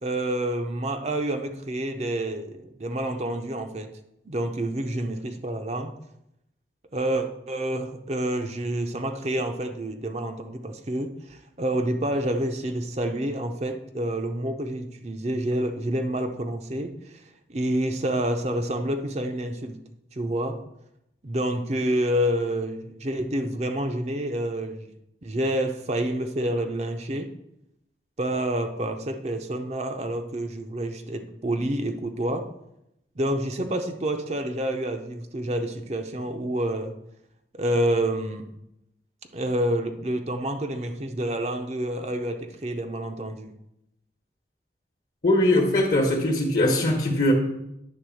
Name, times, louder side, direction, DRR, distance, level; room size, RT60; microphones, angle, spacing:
voice 1, 0.0-3.9 4.3-5.9 6.9-17.2 17.5-19.8 20.1-20.6 21.2-24.9 25.2-27.3 28.2-32.5 33.2-36.9 37.5-38.5 39.3-43.5, right 1 dB, 35° right, 5 dB, 0.6 m, -28 dB
voice 2, 45.2-47.3, left 1 dB, 50° left, -1 dB, 1.1 m, -21 dB
10.0 x 3.6 x 6.2 m, 0.82 s
head